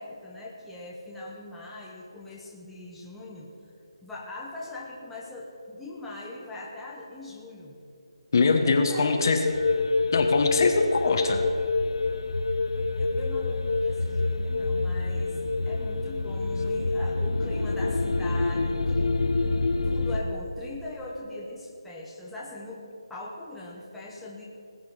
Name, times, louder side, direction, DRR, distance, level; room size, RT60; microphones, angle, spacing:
voice 1, 0.0-3.5 4.0-7.8 8.6-9.5 12.9-15.4 15.7-19.3 19.8-22.8 23.1-24.4, left 2 dB, 5° left, -6 dB, 1.0 m, -40 dB
voice 2, 8.3-9.4 10.1-11.4, left 4 dB, 40° left, 5 dB, 1.3 m, -22 dB
sound 1, 9.4-20.2, left 3 dB, 70° left, 0.9 m, -26 dB
19.5 x 8.5 x 5.0 m, 2.6 s
figure-of-eight pair, 165°, 3 cm